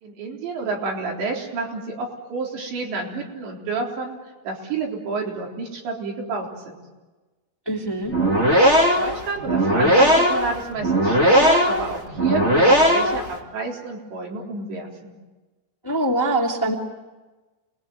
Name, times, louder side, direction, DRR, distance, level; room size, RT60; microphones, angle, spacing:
voice 1, 0.0-4.2 4.4-6.8 8.8-15.1, right 3 dB, 90° right, -1 dB, 6.2 m, -30 dB
voice 2, 7.7-8.1 15.8-16.7, right 1 dB, 10° left, -1 dB, 1.7 m, -23 dB
sound 1, 8.0-13.3, equal, 35° right, 1.0 m, -18 dB
29.0 x 20.5 x 9.4 m, 1.2 s
omnidirectional pair, 4.9 m